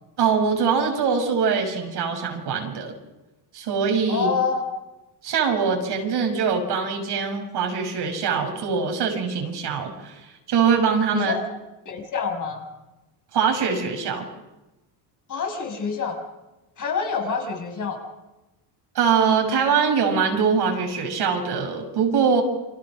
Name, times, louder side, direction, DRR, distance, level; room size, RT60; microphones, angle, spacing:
voice 1, 0.2-2.9 3.5-4.3 5.2-10.2 10.5-11.3 13.3-14.3 18.9-22.4, right 6 dB, 55° right, 3 dB, 6.3 m, -23 dB
voice 2, 4.1-4.6 11.1-11.4 11.8-12.6 15.3-16.2 16.8-18.0, left 5 dB, 40° left, 3 dB, 5.9 m, -26 dB
29.5 x 25.0 x 6.5 m, 1.0 s
cardioid pair, 120°, 47 cm